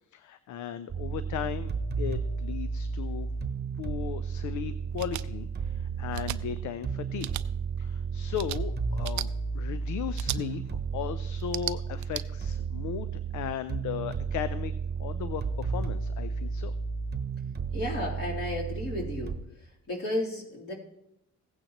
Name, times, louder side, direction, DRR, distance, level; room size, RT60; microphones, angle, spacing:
voice 1, 0.1-3.3 3.8-7.3 7.8-14.7 15.0-16.7, left 10 dB, 75° left, 13 dB, 0.6 m, -37 dB
sound 1, 0.9-19.4, right 5 dB, 35° right, 1.0 m, -33 dB
sound 2, 5.0-5.2 6.1-6.4 7.2-7.4 8.3-8.6 9.0-9.3 10.2-10.4 11.4-12.2, right 14 dB, 70° right, 0.5 m, -34 dB
voice 2, 17.7-19.4 19.9-20.7, left 1 dB, 50° left, -5 dB, 3.5 m, -33 dB
16.0 x 8.9 x 3.0 m, 0.79 s
cardioid pair, 90°, 30 cm